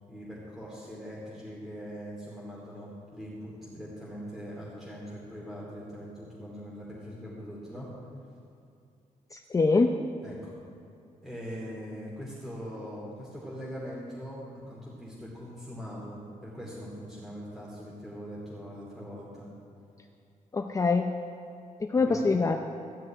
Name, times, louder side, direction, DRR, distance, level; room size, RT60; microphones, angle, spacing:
voice 1, 0.1-7.9 10.2-10.5 11.2-19.5 22.0-22.3, equal, ahead, -7 dB, 2.6 m, -41 dB
voice 2, 9.3-10.0 20.5-21.1 21.8-22.7, left 3 dB, 25° left, 4 dB, 0.5 m, -24 dB
15.0 x 6.2 x 9.0 m, 2.5 s
wide cardioid pair, 150°, 14 cm